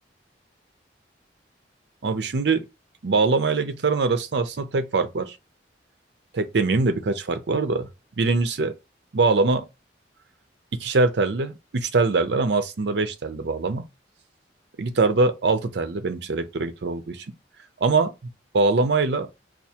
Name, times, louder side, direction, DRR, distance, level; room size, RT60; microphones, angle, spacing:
voice 1, 2.0-2.6 3.0-5.4 6.3-7.9 8.2-8.7 9.1-9.6 10.8-13.9 14.8-17.3 17.8-18.1 18.5-19.3, right 3 dB, 65° right, 0.5 m, -23 dB
4.6 x 2.4 x 2.8 m
head